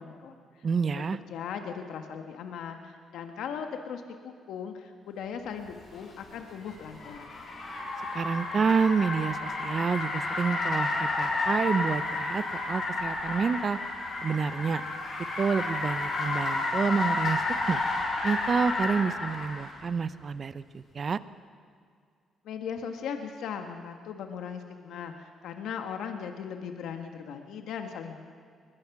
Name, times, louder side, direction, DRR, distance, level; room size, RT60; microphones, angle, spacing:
voice 1, 0.0-7.3 22.4-28.2, left 7 dB, 80° left, 5 dB, 1.5 m, -38 dB
voice 2, 0.6-1.2 8.1-13.8 14.2-14.8 15.4-17.4 17.7-17.8 18.2-21.2, right 5 dB, 45° right, 14 dB, 0.8 m, -28 dB
Car, 5.8-19.7, left 2 dB, 55° left, 6.2 m, -31 dB
22.0 x 21.0 x 6.0 m, 2.1 s
cardioid pair, 90°, 0 cm